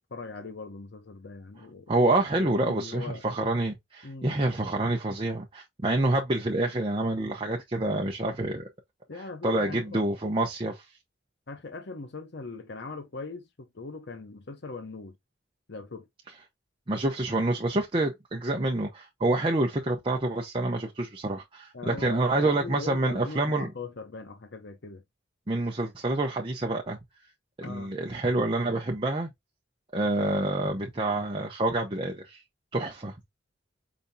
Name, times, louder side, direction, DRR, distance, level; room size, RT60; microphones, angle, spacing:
voice 1, 0.1-1.9 2.4-3.2 4.0-4.3 9.1-10.1 11.5-15.2 15.7-16.1 21.7-25.0 27.6-27.9, left 3 dB, 65° left, 0.8 m, -40 dB
voice 2, 1.9-8.6 9.4-10.8 16.9-23.7 25.5-27.0 27.6-29.3 29.9-32.4 32.7-33.1, right 2 dB, 30° right, 0.8 m, -27 dB
5.2 x 3.3 x 2.7 m
head